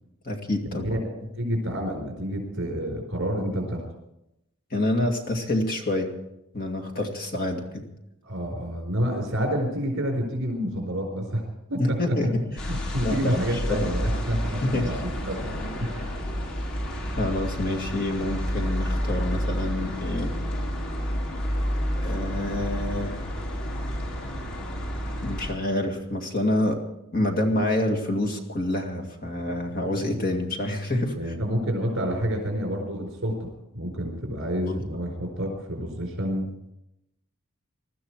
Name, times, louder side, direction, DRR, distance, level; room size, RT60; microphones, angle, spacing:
voice 1, 0.2-0.9 4.7-6.1 6.5-7.9 11.8-12.5 13.0-13.4 13.7-14.2 14.6-14.9 17.2-20.3 22.0-23.2 25.2-26.8 27.1-31.3 34.7-34.8, left 1 dB, 40° left, 3 dB, 2.2 m, -27 dB
voice 2, 1.4-3.8 8.2-11.4 11.7-16.2 31.2-36.5, equal, 60° right, 2 dB, 4.5 m, -29 dB
sound 1, 12.6-25.5, equal, 75° left, 5.5 m, -30 dB
21.0 x 13.0 x 4.8 m, 0.86 s
head